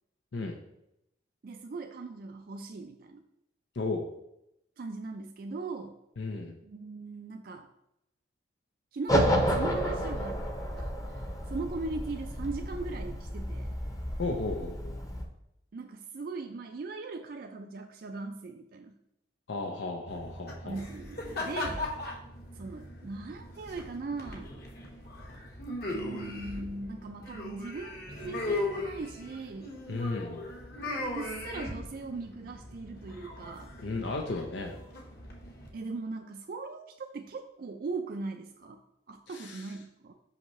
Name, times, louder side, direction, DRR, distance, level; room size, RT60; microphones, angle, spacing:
voice 1, 1.4-3.2 4.8-6.0 6.6-7.7 8.9-10.4 10.8-13.7 15.7-18.9 20.6-21.9 22.5-24.5 25.9-29.8 31.1-33.7 35.7-38.8 39.1-40.1, right 3 dB, 55° right, 5 dB, 0.4 m, -39 dB
voice 2, 3.7-4.1 6.2-6.6 14.2-14.9 19.5-20.8 29.9-30.4 33.8-34.7 39.3-39.7, left 3 dB, 90° left, 2 dB, 0.6 m, -34 dB
sound 1, 9.1-15.2, equal, 20° left, 0.7 m, -31 dB
sound 2, 20.1-35.7, left 2 dB, 60° left, 1.3 m, -39 dB
5.7 x 5.5 x 3.1 m, 0.83 s
head